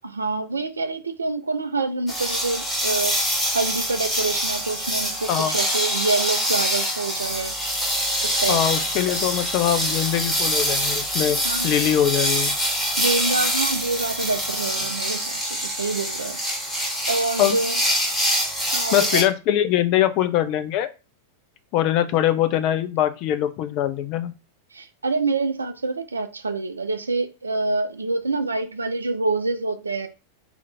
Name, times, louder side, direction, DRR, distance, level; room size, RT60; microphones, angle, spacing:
voice 1, 0.0-7.5 8.2-8.6 11.4-11.7 13.0-16.4 17.1-17.8 18.7-19.2 24.7-30.1, right 3 dB, 75° right, 0.4 m, -26 dB
sound 1, 2.1-19.2, equal, 5° left, 1.2 m, -25 dB
voice 2, 8.5-11.4 11.6-12.5 17.4-17.6 18.9-20.9 21.7-24.3, left 11 dB, 40° left, 0.4 m, -22 dB
2.8 x 2.5 x 4.2 m
figure-of-eight pair, 90°, 0 cm